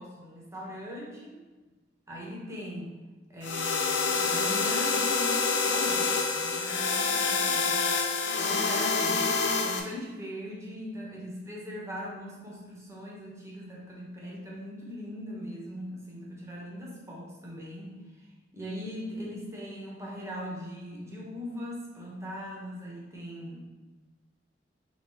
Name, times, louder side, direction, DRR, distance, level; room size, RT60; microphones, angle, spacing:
voice 1, 0.0-1.4 2.1-2.9 3.3-7.8 8.1-18.3 18.5-23.6, equal, 15° right, -4 dB, 0.9 m, -40 dB
sound 1, 3.4-9.8, left 4 dB, 70° left, 0.5 m, -27 dB
4.0 x 3.3 x 3.9 m, 1.2 s
head